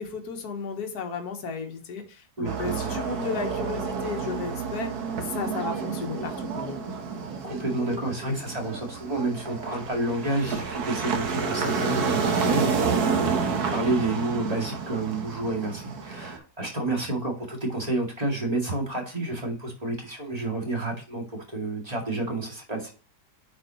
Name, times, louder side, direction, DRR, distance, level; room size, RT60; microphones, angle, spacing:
voice 1, 0.0-4.9 5.3-7.0, left 5 dB, 65° left, 4 dB, 1.7 m, -34 dB
voice 2, 2.4-3.0 7.4-22.9, right 2 dB, 20° right, 0 dB, 2.1 m, -30 dB
sound 1, 2.4-16.4, right 5 dB, 65° right, 1.6 m, -29 dB
9.1 x 5.1 x 2.9 m, 0.37 s
omnidirectional pair, 1.8 m